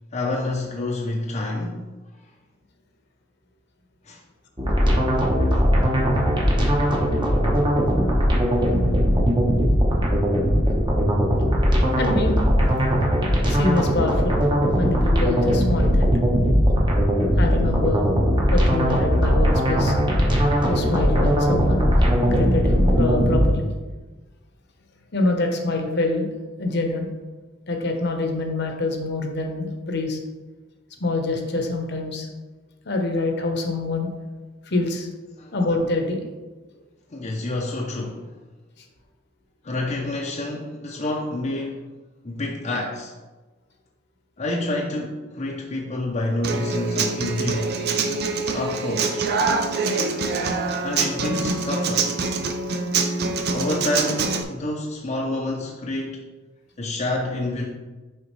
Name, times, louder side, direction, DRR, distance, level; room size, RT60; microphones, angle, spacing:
voice 1, 0.1-1.9 4.0-4.2 35.4-35.5 36.7-36.8 37.1-38.3 39.6-41.9 42.2-43.1 44.4-47.8 48.5-49.3 50.8-52.2 53.5-56.2 56.8-57.7, left 2 dB, 35° left, -2 dB, 0.6 m, -28 dB
sound 1, 4.6-23.5, equal, 25° right, 1.0 m, -19 dB
voice 2, 12.0-12.4 13.5-14.4 14.8-16.1 17.4-18.1 18.5-19.9 20.7-22.0 22.3-23.6 25.1-26.3 26.6-27.1 27.7-30.2 31.0-32.3 32.8-34.1 34.7-35.1 35.5-36.2, left 2 dB, 60° left, 3 dB, 0.9 m, -25 dB
Human voice / Acoustic guitar, 46.4-54.4, right 4 dB, 55° right, 0.5 m, -25 dB
6.5 x 4.8 x 3.2 m, 1.2 s
head